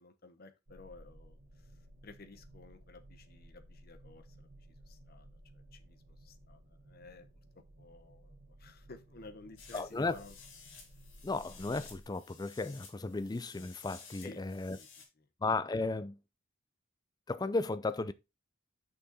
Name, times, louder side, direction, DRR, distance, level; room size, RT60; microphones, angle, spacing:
voice 1, 0.0-1.4 2.0-5.3 5.5-7.3 7.8-10.4 14.2-14.4 14.8-15.3, left 3 dB, 50° left, 1.1 m, -54 dB
sound 1, 0.7-12.0, right 1 dB, 70° right, 1.8 m, -57 dB
sound 2, 9.6-15.1, left 5 dB, 85° left, 3.7 m, -55 dB
voice 2, 9.7-10.2 11.2-14.8 15.4-16.2 17.3-18.1, left 3 dB, 20° left, 0.4 m, -34 dB
6.5 x 5.8 x 4.1 m
head